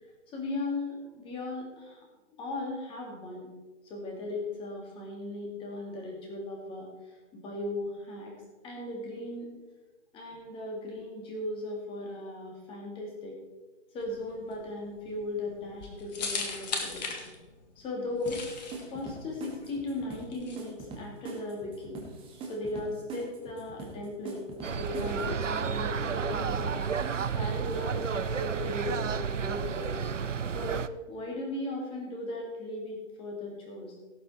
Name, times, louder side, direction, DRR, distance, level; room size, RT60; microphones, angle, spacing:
voice 1, 0.3-2.0 2.3-3.5 3.8-6.9 7.3-8.3 8.6-9.5 10.1-13.3 13.9-17.4 17.8-18.4 18.9-22.0 22.5-24.4 24.7-26.9 27.4-30.1 30.5-30.8 31.1-33.9, left 2 dB, 15° left, 0 dB, 2.4 m, -37 dB
sound 1, 14.0-20.6, left 4 dB, 35° left, 1.9 m, -39 dB
sound 2, 18.3-25.6, right 3 dB, 15° right, 2.1 m, -43 dB
sound 3, 24.6-30.9, right 6 dB, 80° right, 0.7 m, -31 dB
17.5 x 7.1 x 4.4 m, 1.2 s
figure-of-eight pair, 135°, 37 cm